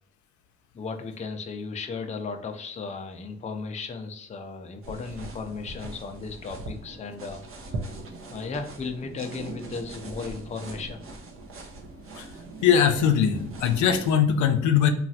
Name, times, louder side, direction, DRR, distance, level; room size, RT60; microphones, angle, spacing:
voice 1, 0.7-7.9 8.3-11.0, left 4 dB, 25° left, 4 dB, 0.4 m, -35 dB
sound 1, 4.8-14.1, right 2 dB, 45° right, 0.7 m, -40 dB
voice 2, 12.6-14.9, left 8 dB, 75° left, 7 dB, 0.5 m, -21 dB
3.0 x 2.4 x 2.6 m, 0.70 s
cardioid pair, 90°, 30 cm